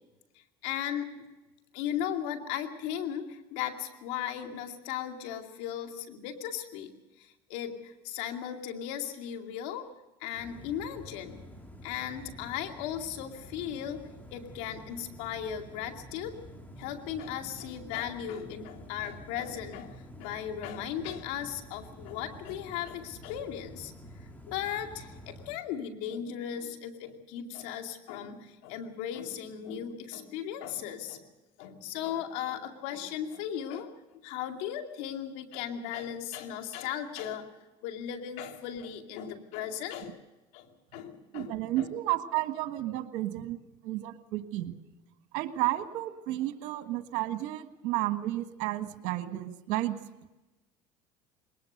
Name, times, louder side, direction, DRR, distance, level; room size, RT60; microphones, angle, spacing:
voice 1, 0.6-1.2 1.7-6.9 7.2-9.9 10.2-11.4 11.8-14.0 14.3-16.3 16.8-23.9 24.5-31.2 31.6-37.5 37.8-40.2 40.5-41.9, left 9 dB, 80° left, 5 dB, 2.4 m, -37 dB
sound 1, 10.3-25.6, equal, 10° left, 3.1 m, -49 dB
voice 2, 41.3-43.6 43.8-44.7 45.3-50.0, right 15 dB, 75° right, 9 dB, 1.6 m, -32 dB
22.0 x 19.5 x 6.6 m, 1.1 s
supercardioid pair, 95°, 14 cm